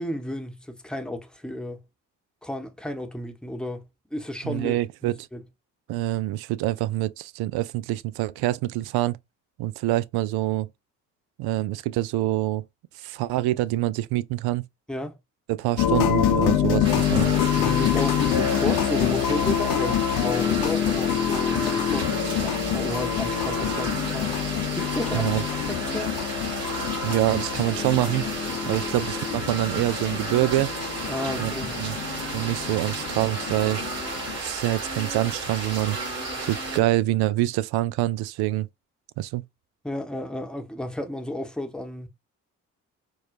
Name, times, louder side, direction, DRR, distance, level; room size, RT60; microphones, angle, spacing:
voice 1, 0.0-1.8 2.4-5.4 14.9-15.2 17.5-24.4 24.7-25.3 25.6-26.2 31.1-31.8 39.8-42.1, left 1 dB, ahead, 0.9 m, -33 dB
voice 2, 4.4-5.1 5.9-9.2 9.6-10.7 11.4-12.6 13.0-14.6 15.5-17.3 25.1-25.4 27.0-28.3 28.7-30.7 31.4-32.0 32.3-33.8 34.4-36.0 36.5-38.7 39.2-39.4, right 15 dB, 65° right, 0.5 m, -25 dB
sound 1, 15.8-34.4, left 9 dB, 70° left, 0.7 m, -26 dB
sound 2, 16.8-36.8, right 3 dB, 40° right, 2.3 m, -33 dB
4.4 x 2.3 x 2.4 m
hypercardioid pair, 40°, 41 cm